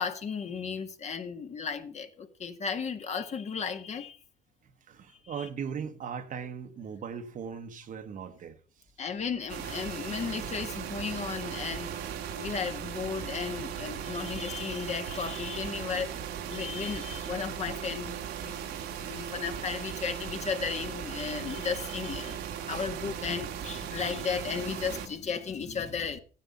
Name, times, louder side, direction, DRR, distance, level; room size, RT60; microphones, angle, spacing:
voice 1, 0.0-4.2 5.4-5.5 9.0-16.2 16.5-18.8 19.1-26.2, left 6 dB, 40° left, 1.8 m, -35 dB
voice 2, 4.9-8.6 22.7-22.9, right 7 dB, 50° right, 1.3 m, -38 dB
sound 1, 9.5-25.1, right 8 dB, 85° right, 2.0 m, -38 dB
14.0 x 9.6 x 5.5 m
cardioid pair, 110°, 17 cm